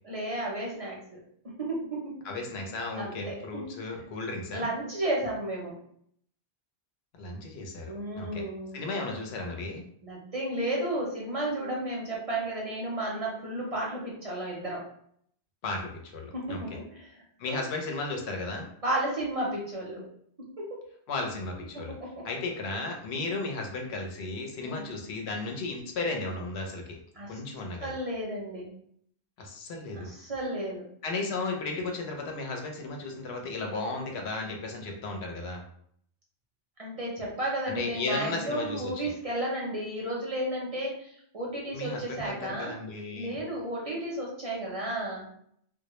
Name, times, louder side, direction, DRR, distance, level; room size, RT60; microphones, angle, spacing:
voice 1, 0.0-1.2 1.6-2.2 3.0-3.7 4.5-5.7 7.8-8.9 10.0-14.8 16.3-17.6 18.8-20.0 20.6-20.8 21.7-22.3 24.6-24.8 27.1-27.4 27.8-28.7 29.9-30.9 36.8-42.8 43.1-45.3, right 1 dB, 40° right, -4 dB, 0.6 m, -33 dB
voice 2, 2.2-4.7 7.2-8.4 8.7-9.8 15.6-16.6 17.4-18.6 21.1-21.9 22.2-27.0 27.3-27.9 29.4-30.1 31.0-35.6 37.7-39.1 41.7-43.4, left 3 dB, 90° left, 2 dB, 0.8 m, -35 dB
2.1 x 2.0 x 2.9 m, 0.66 s
omnidirectional pair, 1.0 m